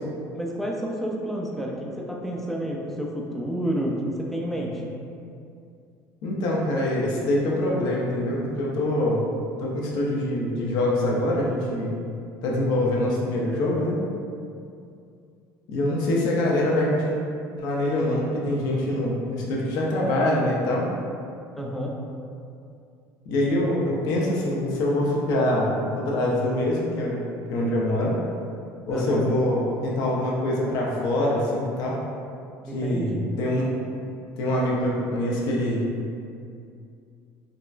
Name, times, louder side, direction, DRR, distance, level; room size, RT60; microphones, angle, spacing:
voice 1, 0.3-4.8 21.6-21.9 28.9-29.3 32.6-33.2, equal, 5° left, -2 dB, 0.4 m, -30 dB
voice 2, 6.2-9.3 9.6-11.9 12.4-14.0 15.7-17.2 17.6-20.9 23.3-28.1 28.9-32.0 32.7-33.7 34.4-35.8, left 1 dB, 70° left, -4 dB, 0.6 m, -24 dB
3.7 x 2.1 x 2.4 m, 2.4 s
cardioid pair, 115°, 7 cm